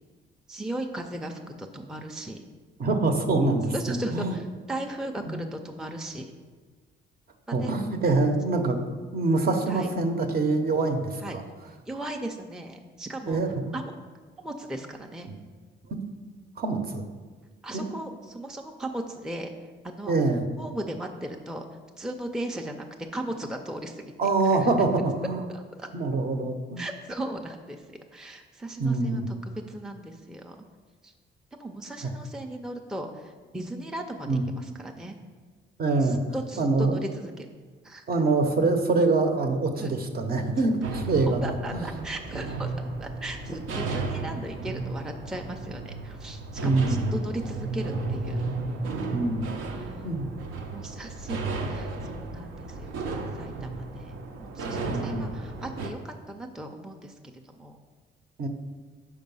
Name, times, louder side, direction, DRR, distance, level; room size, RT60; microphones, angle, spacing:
voice 1, 0.5-2.4 3.7-6.3 7.5-7.7 9.7-9.9 11.2-11.4 11.9-13.4 13.7-13.9 14.4-15.3 17.6-19.5 19.8-20.2 20.6-21.6 22.0-22.9 23.1-24.1 24.4-24.7 25.5-25.9 26.8-27.8 28.1-30.6 31.0-31.1 31.6-35.2 36.0-37.5 37.8-38.0 39.8-39.9 41.4-42.7 43.0-48.4 49.6-50.4 50.7-57.1 57.4-57.8, right 1 dB, 5° right, 3 dB, 0.5 m, -37 dB
voice 2, 2.8-4.4 5.2-5.4 7.5-8.8 9.1-11.4 13.3-13.7 15.3-15.4 15.9-16.0 16.6-17.0 17.7-17.8 20.1-20.4 24.2-25.5 25.9-26.8 28.8-29.3 32.0-32.1 34.3-34.4 35.8-36.2 36.6-37.2 38.1-41.4 41.7-42.0 46.6-47.1 49.1-49.5 50.0-50.3 54.9-55.3 58.4-58.5, right 3 dB, 50° right, 5 dB, 0.8 m, -25 dB
sound 1, 40.8-55.9, right 3 dB, 80° right, 0.7 m, -34 dB
5.2 x 4.7 x 5.4 m, 1.4 s
cardioid pair, 90°, 20 cm